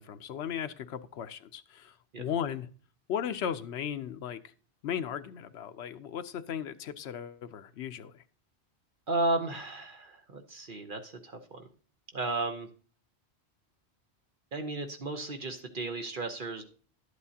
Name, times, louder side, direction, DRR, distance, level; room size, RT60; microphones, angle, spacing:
voice 1, 0.0-2.7 3.1-4.5 4.8-8.2, left 8 dB, 75° left, 10 dB, 0.9 m, -36 dB
voice 2, 9.1-11.7 12.1-12.7 14.5-16.6, right 2 dB, 50° right, 6 dB, 1.0 m, -34 dB
11.5 x 8.1 x 2.8 m, 0.41 s
omnidirectional pair, 1.1 m